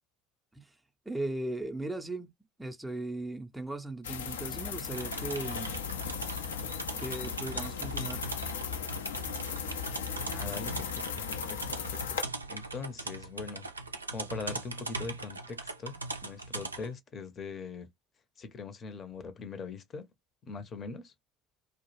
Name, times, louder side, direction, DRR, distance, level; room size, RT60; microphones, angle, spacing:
voice 1, 1.1-2.3 2.6-5.7 7.0-8.3, right 2 dB, 5° right, 0.5 m, -37 dB
sound 1, 4.0-12.2, left 7 dB, 75° left, 0.4 m, -37 dB
sound 2, 4.8-16.9, right 3 dB, 85° right, 0.3 m, -40 dB
voice 2, 10.3-13.7 14.1-17.9 18.4-20.1 20.5-21.1, left 4 dB, 35° left, 0.6 m, -42 dB
2.2 x 2.0 x 3.0 m
figure-of-eight pair, 65°, 0 cm